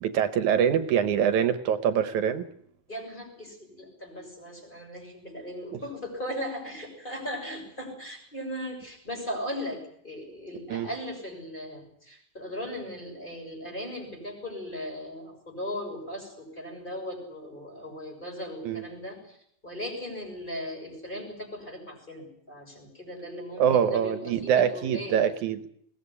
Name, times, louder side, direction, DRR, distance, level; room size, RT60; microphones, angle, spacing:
voice 1, 0.0-2.5 10.7-10.9 18.6-18.8 23.6-25.7, right 8 dB, 80° right, 11 dB, 2.4 m, -24 dB
voice 2, 2.9-19.4 19.6-25.2, equal, 15° left, 2 dB, 6.9 m, -38 dB
21.5 x 18.0 x 9.8 m, 0.67 s
omnidirectional pair, 3.4 m